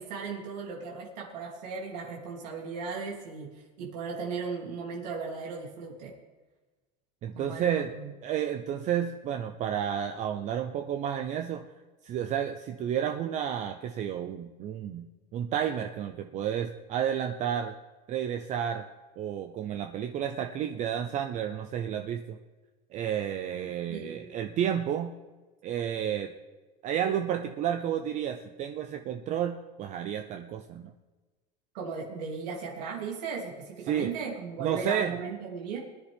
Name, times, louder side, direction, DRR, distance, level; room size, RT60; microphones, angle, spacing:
voice 1, 0.0-6.1 7.3-8.1 23.5-24.3 31.7-35.8, right 5 dB, 90° right, -3 dB, 3.1 m, -37 dB
voice 2, 7.2-7.9 8.2-11.6 12.0-15.0 15.3-17.8 18.1-18.8 19.2-22.4 22.9-25.1 25.6-26.3 26.8-30.9 33.9-34.1 34.6-35.1, right 9 dB, 35° right, 6 dB, 0.7 m, -31 dB
20.5 x 10.0 x 3.6 m, 1.2 s
supercardioid pair, 145°, 21 cm